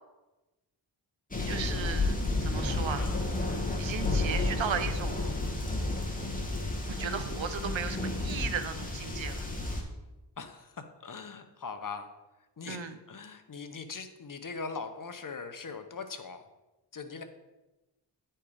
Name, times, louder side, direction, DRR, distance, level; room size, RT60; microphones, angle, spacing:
sound 1, 1.3-9.8, left 2 dB, 20° left, 1.4 m, -31 dB
voice 1, 1.5-3.1 3.8-5.2 7.0-9.5 12.7-13.0, right 7 dB, 75° right, 10 dB, 0.8 m, -36 dB
voice 2, 10.4-10.7 11.0-12.1 12.6-16.4 16.9-17.2, left 4 dB, 45° left, 8 dB, 0.8 m, -41 dB
9.7 x 4.4 x 5.0 m, 1.1 s
wide cardioid pair, 80°, 46 cm